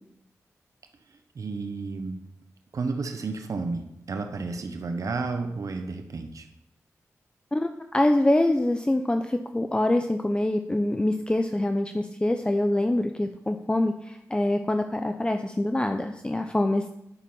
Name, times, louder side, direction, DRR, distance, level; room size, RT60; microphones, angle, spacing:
voice 1, 1.3-2.2 2.7-6.5, right 4 dB, 70° right, 7 dB, 1.0 m, -32 dB
voice 2, 7.5-16.9, left 1 dB, 15° left, 6 dB, 0.7 m, -25 dB
10.0 x 6.5 x 5.6 m, 0.80 s
cardioid pair, 60°, 6 cm